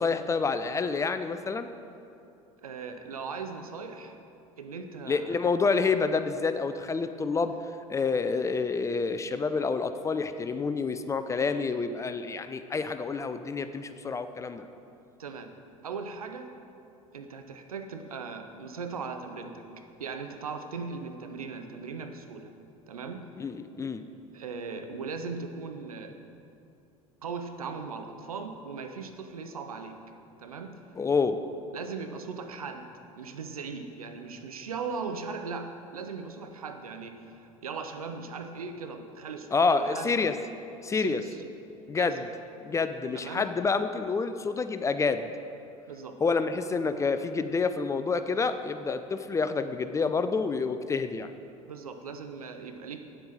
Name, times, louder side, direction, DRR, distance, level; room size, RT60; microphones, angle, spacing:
voice 1, 0.0-1.7 5.1-7.5 7.9-14.7 23.4-24.0 31.0-31.4 39.5-40.3 40.8-41.2 41.9-42.2 42.6-45.3 46.2-51.3, left 4 dB, 15° left, 10 dB, 0.4 m, -28 dB
voice 2, 2.6-4.1 4.6-5.4 15.2-15.5 15.8-16.5 17.1-22.5 22.9-23.3 24.3-26.3 27.2-30.0 30.4-30.8 31.7-40.4 40.9-41.4 42.0-42.3 43.1-43.5 45.9-46.2 51.7-53.0, right 5 dB, 80° right, 7 dB, 0.6 m, -39 dB
8.7 x 7.7 x 4.1 m, 2.6 s
figure-of-eight pair, 70°, 18 cm